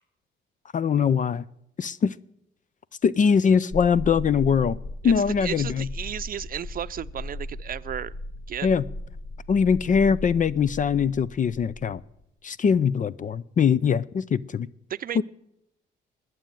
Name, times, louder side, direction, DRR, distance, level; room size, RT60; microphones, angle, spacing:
voice 1, 0.7-1.4 1.8-2.1 3.0-4.8 5.0-5.9 8.6-8.8 9.5-12.0 12.4-14.7 15.1-15.2, left 6 dB, 40° left, 19 dB, 0.5 m, -22 dB
sound 1, 3.7-12.2, left 1 dB, 65° left, 2.6 m, -37 dB
voice 2, 5.0-8.1 8.5-8.7 14.9-15.2, right 9 dB, 45° right, 15 dB, 0.6 m, -34 dB
20.5 x 7.7 x 9.1 m, 0.80 s
cardioid pair, 90°, 20 cm